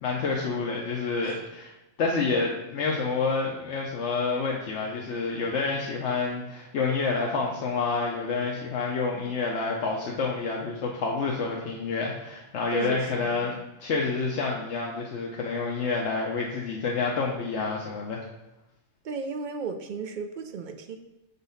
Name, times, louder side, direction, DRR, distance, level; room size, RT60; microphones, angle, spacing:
voice 1, 0.0-1.7 2.0-18.2, left 4 dB, 75° left, -1 dB, 1.0 m, -28 dB
voice 2, 12.7-13.6 19.0-21.0, right 5 dB, 60° right, 7 dB, 0.5 m, -35 dB
5.5 x 4.0 x 5.5 m, 0.94 s
omnidirectional pair, 1.2 m